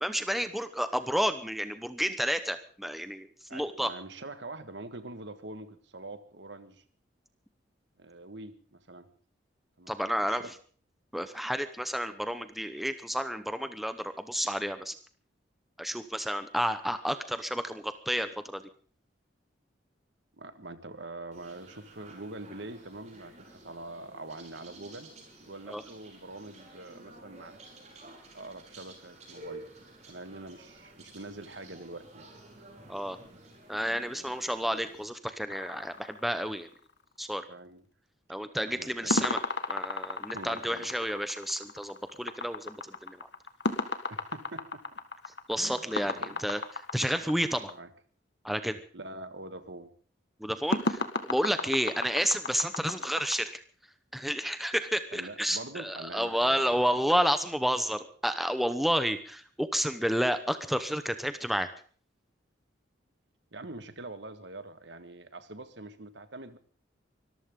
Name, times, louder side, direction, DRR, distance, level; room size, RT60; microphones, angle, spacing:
voice 1, 0.0-3.9 9.9-10.4 11.1-14.9 15.8-18.6 25.7-25.8 32.9-33.2 33.7-36.7 37.2-37.5 38.3-39.4 39.7-42.8 43.0-43.3 45.5-46.6 46.9-47.7 48.4-48.8 50.4-51.0 51.3-53.6 54.1-61.7, equal, ahead, 9 dB, 0.9 m, -30 dB
voice 2, 3.5-6.8 8.0-9.1 9.8-9.9 10.2-10.5 20.3-25.1 25.4-27.6 28.3-29.6 30.1-32.3 34.1-34.3 37.5-37.8 38.6-39.3 40.3-40.9 44.1-45.0 45.6-46.4 47.7-47.9 48.9-49.9 51.5-51.7 55.1-56.9 63.5-66.6, right 2 dB, 70° right, 10 dB, 1.6 m, -44 dB
sound 1, 21.3-35.1, right 2 dB, 35° right, 5.6 m, -52 dB
sound 2, 35.5-36.9 39.1-47.7 50.7-53.4, left 3 dB, 65° left, 1.7 m, -34 dB
24.0 x 14.5 x 3.8 m, 0.44 s
head